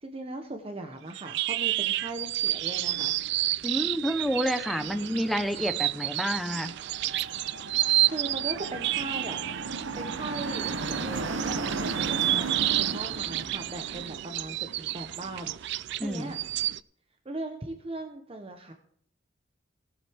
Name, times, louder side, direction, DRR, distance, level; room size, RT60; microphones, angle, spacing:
voice 1, 0.0-3.1 7.7-9.4 10.0-16.4 17.2-18.7, right 2 dB, 30° right, 4 dB, 0.9 m, -39 dB
sound 1, 1.1-16.8, right 15 dB, 60° right, 0.3 m, -30 dB
voice 2, 3.6-6.7 16.0-16.3, equal, ahead, 8 dB, 0.8 m, -29 dB
sound 2, 6.7-14.1, right 3 dB, 80° right, 1.0 m, -35 dB
18.0 x 7.7 x 3.5 m, 0.63 s
head